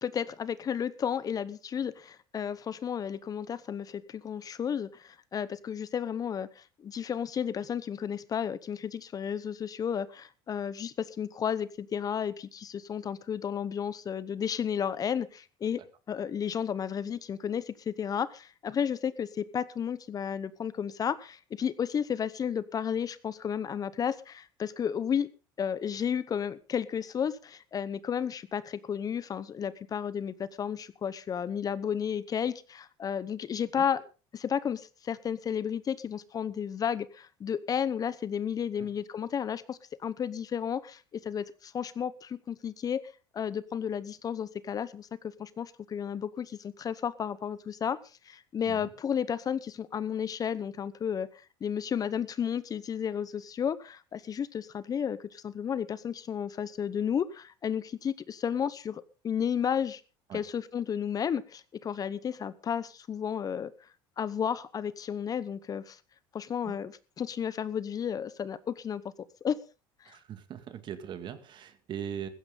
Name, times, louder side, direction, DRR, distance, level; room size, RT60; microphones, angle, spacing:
voice 1, 0.0-15.8 16.1-25.3 25.6-34.0 34.3-43.0 43.3-45.1 45.4-48.0 48.3-51.3 51.6-60.0 60.3-63.7 64.2-66.0 66.3-69.0 69.4-69.6 70.0-70.2, left 8 dB, 35° left, 17 dB, 0.9 m, -32 dB
voice 2, 70.1-72.3, right 9 dB, 45° right, 10 dB, 2.1 m, -40 dB
15.5 x 14.0 x 3.9 m, 0.34 s
supercardioid pair, 95°, 11 cm